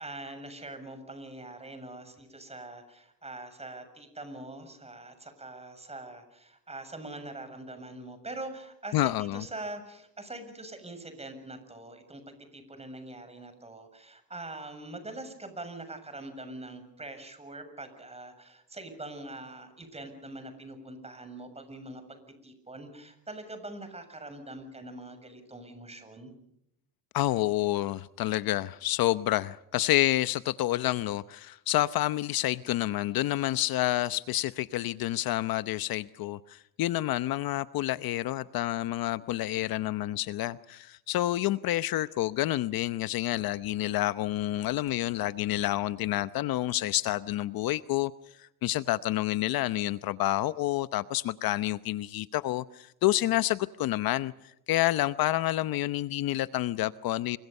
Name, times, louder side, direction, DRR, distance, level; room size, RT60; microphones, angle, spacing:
voice 1, 0.0-26.3, right 2 dB, 15° right, 7.1 m, -43 dB
voice 2, 8.9-9.4 27.1-48.1 48.4-54.3 54.7-57.4, left 15 dB, 55° left, 0.9 m, -29 dB
29.0 x 24.5 x 5.5 m
cardioid pair, 115°, 42 cm